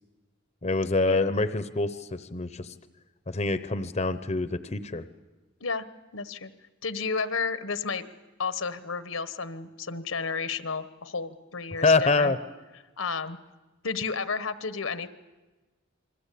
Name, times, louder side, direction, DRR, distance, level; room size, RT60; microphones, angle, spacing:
voice 1, 0.6-2.7 3.3-5.0 11.8-12.4, left 3 dB, 30° left, 12 dB, 0.8 m, -25 dB
voice 2, 6.1-6.5 6.8-8.1 8.4-12.3 13.0-13.4 13.8-15.1, left 5 dB, 80° left, 13 dB, 1.2 m, -32 dB
28.5 x 22.0 x 8.5 m, 1.2 s
head